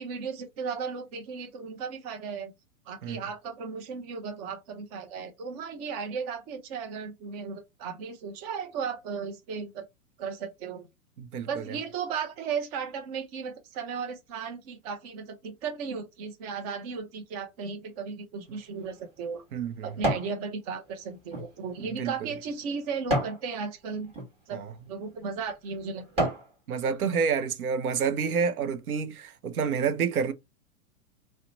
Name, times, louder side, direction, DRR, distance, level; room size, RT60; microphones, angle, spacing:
voice 1, 0.0-2.5 2.9-9.9 10.2-10.9 11.5-19.4 19.8-24.1 24.5-26.3, right 5 dB, 30° right, 0.5 m, -35 dB
voice 2, 11.2-11.7 19.5-19.9 21.8-22.1 24.5-24.7 26.7-30.3, right 6 dB, 85° right, 0.7 m, -29 dB
sound 1, 18.5-20.4 20.8-23.4 24.0-24.3 25.0-25.1 25.6-26.5 27.0-27.1, right 1 dB, 15° right, 1.2 m, -32 dB
2.8 x 2.1 x 3.8 m
hypercardioid pair, 135°, 43 cm